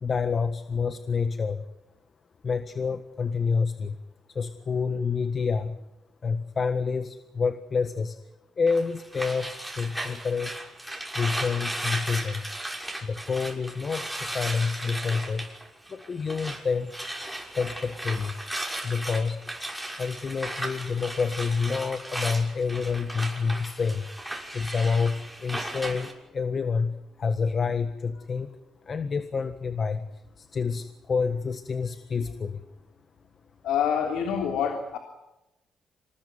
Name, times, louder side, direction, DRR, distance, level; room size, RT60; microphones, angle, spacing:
voice 1, 0.0-1.6 2.4-4.0 4.3-5.8 6.2-8.2 8.6-10.6 11.2-12.4 13.0-16.9 17.5-18.3 18.8-19.4 20.0-24.1 24.5-28.6 28.9-32.6, left 5 dB, 40° left, 9 dB, 1.6 m, -28 dB
sound 1, 8.7-16.6 16.9-26.1, right 1 dB, 5° right, 6.0 m, -36 dB
voice 2, 33.6-35.0, left 8 dB, 85° left, 4 dB, 3.3 m, -26 dB
27.0 x 19.5 x 9.4 m, 0.93 s
cardioid pair, 90°, 0 cm